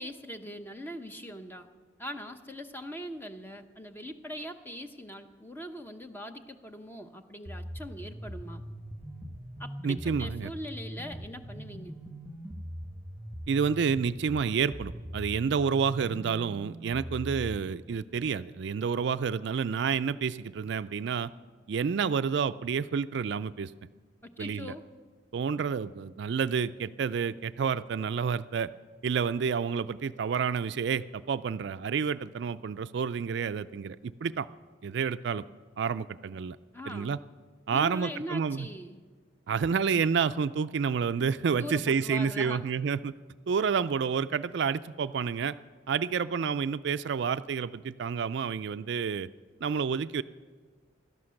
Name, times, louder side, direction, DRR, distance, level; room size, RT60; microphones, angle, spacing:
voice 1, 0.0-1.7 2.0-8.6 9.6-12.0 24.2-24.8 36.7-37.2 37.7-39.0 41.6-42.6, equal, 10° left, 7 dB, 0.8 m, -41 dB
sound 1, 7.5-17.6, equal, 10° right, 1.3 m, -41 dB
voice 2, 9.8-10.5 13.5-21.3 21.7-23.7 24.4-24.7 25.3-28.7 29.0-34.5 34.8-35.4 35.8-36.6 36.9-37.2 37.7-38.7 39.5-43.1 43.5-45.6 45.9-49.3 49.6-50.2, right 6 dB, 60° right, 13 dB, 0.4 m, -29 dB
17.0 x 12.5 x 6.4 m, 1.4 s
head